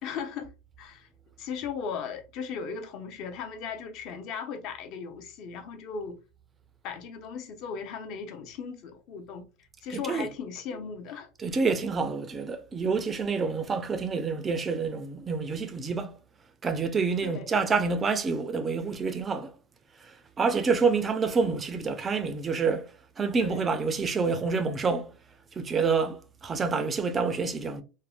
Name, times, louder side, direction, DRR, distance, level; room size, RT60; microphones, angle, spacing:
voice 1, 0.0-0.5 0.8-1.1 1.4-6.2 6.8-9.4 9.8-11.3 17.2-17.5 23.4-23.7, left 6 dB, 50° left, 0.6 m, -37 dB
voice 2, 11.4-16.1 16.6-19.5 20.0-22.9 23.2-25.1 25.6-27.8, right 4 dB, 20° right, 0.3 m, -27 dB
3.3 x 2.0 x 2.4 m
supercardioid pair, 150°, 0 cm